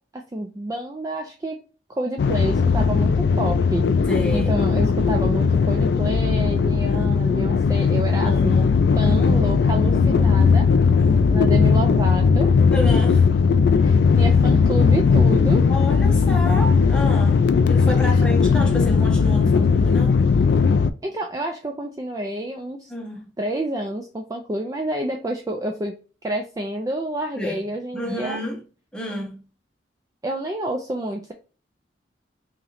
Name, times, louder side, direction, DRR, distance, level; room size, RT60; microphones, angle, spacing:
voice 1, 0.1-1.6 1.9-3.8 4.3-8.6 9.0-11.0 11.3-12.5 13.8-15.6 18.0-18.2 21.0-22.9 23.4-28.4 30.2-31.3, right 1 dB, 20° right, 0.3 m, -29 dB
sound 1, 2.2-20.9, left 5 dB, 65° left, 0.3 m, -18 dB
voice 2, 4.1-4.6 6.9-7.1 8.2-8.6 9.1-9.4 11.0-11.4 12.7-13.2 15.7-20.2 22.9-23.3 27.4-27.6 27.9-28.6 28.9-29.4, equal, 5° left, 0.9 m, -30 dB
3.0 x 2.9 x 3.9 m
head